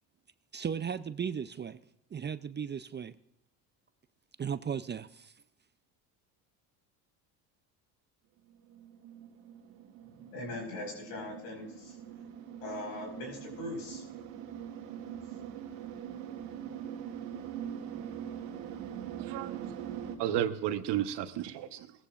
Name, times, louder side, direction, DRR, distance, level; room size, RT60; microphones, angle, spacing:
voice 1, 0.5-1.8 2.1-3.2 4.4-5.3, right 7 dB, 25° right, 0.5 m, -36 dB
sound 1, 8.5-20.2, right 9 dB, 80° right, 1.7 m, -43 dB
voice 2, 10.1-12.2 12.6-14.0, left 2 dB, 85° left, 5.4 m, -41 dB
voice 3, 19.2-21.9, right 11 dB, 65° right, 1.2 m, -33 dB
18.0 x 14.5 x 2.5 m
supercardioid pair, 75°, 45 cm